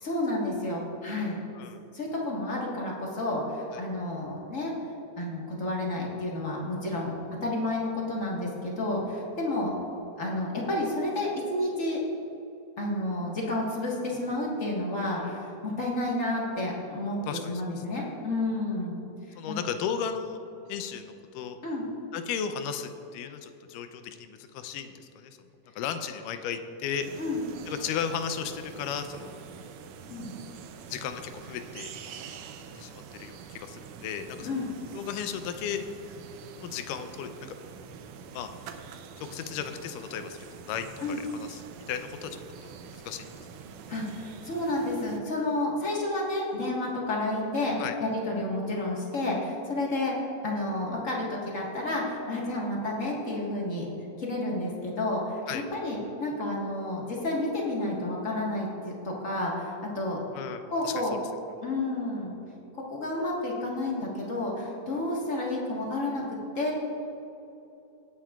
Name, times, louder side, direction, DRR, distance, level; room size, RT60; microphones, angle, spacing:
voice 1, 0.0-1.4 1.9-4.7 5.2-7.1 7.4-9.7 10.2-12.0 12.8-17.2 17.5-19.0 19.3-19.6 21.6-21.8 27.2-27.4 30.1-30.3 34.4-34.7 41.0-41.2 43.9-53.9 54.2-60.2 60.7-61.2 61.6-62.3 62.7-66.8, left 2 dB, 40° left, -3 dB, 1.1 m, -30 dB
voice 2, 17.3-17.7 19.4-20.4 20.7-21.6 22.1-25.4 25.8-27.1 27.7-29.4 30.9-31.9 32.8-34.7 34.9-35.8 36.6-37.6 38.3-38.5 39.2-41.6 41.9-43.3 47.8-48.0 55.5-55.6 60.3-60.9, left 8 dB, 90° left, 8 dB, 2.3 m, -35 dB
sound 1, 27.0-45.2, right 6 dB, 75° right, 1.8 m, -45 dB
19.0 x 9.0 x 2.4 m, 3.0 s
omnidirectional pair, 3.7 m